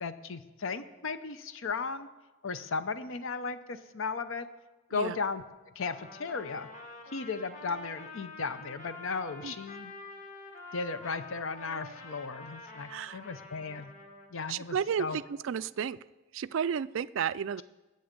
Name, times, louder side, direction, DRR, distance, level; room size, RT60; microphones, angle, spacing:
voice 1, 0.0-2.1 2.4-4.5 4.9-5.4 5.8-6.7 7.1-9.9 10.7-13.9 14.3-15.2, left 4 dB, 65° left, 12 dB, 0.7 m, -36 dB
Trumpet, 5.9-14.3, left 3 dB, 35° left, 1.8 m, -47 dB
voice 2, 12.9-13.2 14.5-16.0 16.3-17.6, right 7 dB, 60° right, 17 dB, 0.3 m, -32 dB
19.5 x 7.8 x 5.2 m, 1.2 s
head